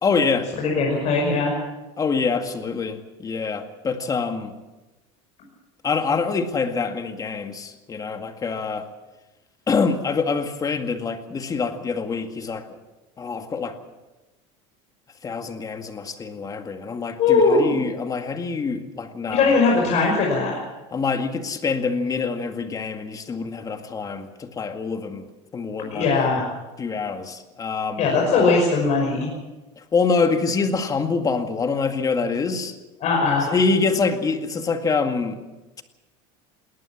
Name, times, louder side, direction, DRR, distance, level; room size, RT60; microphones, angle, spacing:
voice 1, 0.0-0.5 2.0-4.5 5.8-8.9 9.7-12.7 13.2-13.8 15.2-19.6 20.9-25.3 25.5-26.1 26.8-28.1 29.9-32.7 33.5-35.4, left 4 dB, 25° left, 7 dB, 2.0 m, -25 dB
voice 2, 0.6-1.5 17.2-17.8 19.3-20.6 25.9-26.4 28.0-29.3 33.0-33.5, left 4 dB, 45° left, -1 dB, 5.9 m, -19 dB
20.0 x 18.5 x 7.3 m, 1.1 s
supercardioid pair, 130°, 15 cm